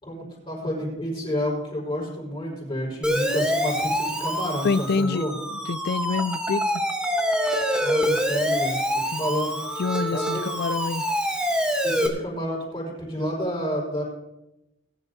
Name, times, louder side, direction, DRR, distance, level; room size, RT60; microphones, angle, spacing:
voice 1, 0.0-5.3 7.8-9.6 10.1-10.4 11.8-14.0, equal, 25° left, 4.9 m, -30 dB
Siren, 3.0-12.1, equal, 5° right, 1.1 m, -26 dB
voice 2, 4.6-5.2 5.5-6.8 9.1-9.2 9.8-11.0, left 4 dB, 50° left, 0.4 m, -26 dB
19.5 x 11.0 x 2.7 m
head